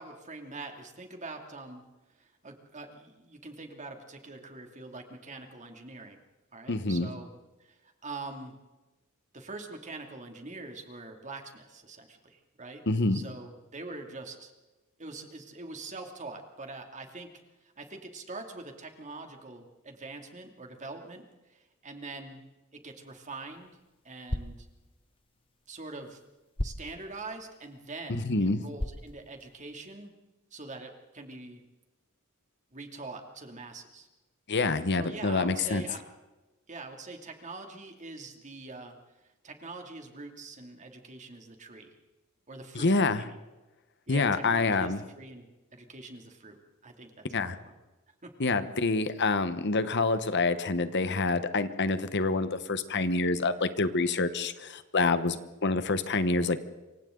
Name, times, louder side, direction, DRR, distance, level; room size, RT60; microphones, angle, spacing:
voice 1, 0.0-1.8 2.2-6.2 6.5-7.3 7.6-8.5 9.3-12.8 13.1-14.5 15.0-17.3 17.6-22.4 22.7-23.7 24.0-24.7 25.7-26.2 26.6-30.1 30.5-31.6 32.7-34.1 34.9-36.0 36.7-39.0 39.4-42.0 42.5-43.4 44.1-47.7 48.2-48.3, right 3 dB, 35° right, 4 dB, 2.7 m, -44 dB
voice 2, 6.7-7.1 12.9-13.2 28.1-28.6 34.5-35.8 42.7-43.2 44.1-45.0 47.3-47.6 48.4-56.6, left 3 dB, 55° left, 11 dB, 1.2 m, -27 dB
sound 1, 23.0-30.0, left 1 dB, 25° left, 0.9 m, -41 dB
27.5 x 24.5 x 3.9 m, 1.1 s
head